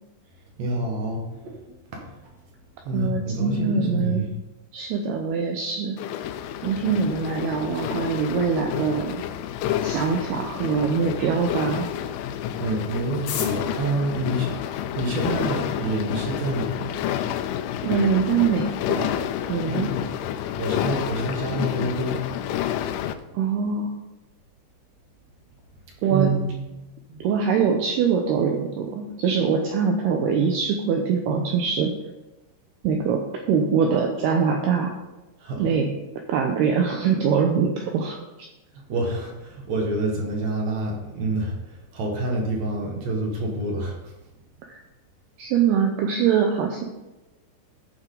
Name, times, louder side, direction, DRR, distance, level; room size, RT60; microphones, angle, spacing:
voice 1, 0.6-2.0 2.8-4.2 12.6-17.0 19.7-20.1 20.6-22.2 26.1-26.5 27.1-27.2 35.4-35.6 38.9-44.1, right 1 dB, 60° right, 0 dB, 1.9 m, -27 dB
voice 2, 2.9-4.3 4.7-6.0 6.6-9.2 9.8-11.9 17.8-20.0 23.3-24.0 26.0-26.3 27.2-31.9 32.8-34.9 35.6-35.9 36.3-38.2 44.7-44.8 45.4-46.8, right 6 dB, 85° right, 2 dB, 2.3 m, -23 dB
sound 1, 6.0-23.1, left 11 dB, 85° left, 3.1 m, -29 dB
sound 2, 13.1-15.3 16.1-16.2 16.5-16.6 16.8-17.3 17.6-17.7 17.9-18.3 18.7-18.8 19.2-19.5, left 9 dB, 70° left, 2.5 m, -37 dB
14.5 x 6.1 x 3.9 m, 1.0 s
omnidirectional pair, 5.5 m